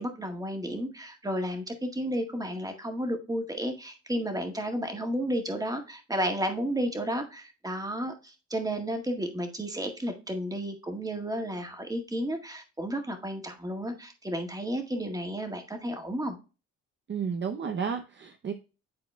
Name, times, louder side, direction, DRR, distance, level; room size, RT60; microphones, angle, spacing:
voice 1, 0.0-16.4, equal, 10° right, 5 dB, 1.7 m, -32 dB
voice 2, 17.1-18.5, right 6 dB, 40° right, 6 dB, 0.7 m, -32 dB
10.5 x 4.2 x 2.2 m, 0.32 s
cardioid pair, 90°, 30 cm